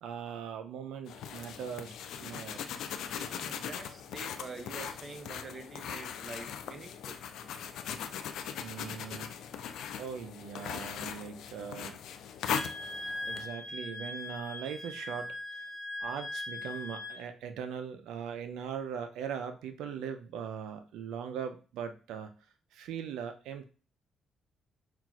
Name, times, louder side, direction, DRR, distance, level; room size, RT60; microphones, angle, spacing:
voice 1, 0.0-1.9 2.2-2.6 8.6-9.3 10.0-12.0 13.3-15.7 16.0-22.3 22.7-23.7, right 7 dB, 85° right, 0.4 m, -40 dB
sound 1, 1.1-13.5, left 8 dB, 80° left, 0.3 m, -40 dB
voice 2, 3.1-7.2, right 3 dB, 35° right, 0.7 m, -46 dB
Wind instrument woodwind instrument, 12.5-17.2, left 1 dB, 40° left, 1.1 m, -40 dB
5.7 x 2.3 x 2.4 m
cardioid pair, 90°, 0 cm